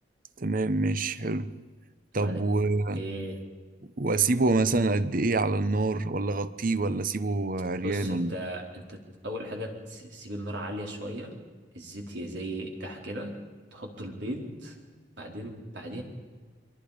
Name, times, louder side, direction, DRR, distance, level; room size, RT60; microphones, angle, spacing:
voice 1, 0.4-1.5 2.1-3.0 4.0-8.3, right 3 dB, 50° right, 0.9 m, -26 dB
voice 2, 2.9-3.4 7.8-11.3 11.7-13.3 13.7-14.8 15.2-16.0, equal, 75° right, 4.3 m, -37 dB
29.5 x 23.5 x 5.1 m
head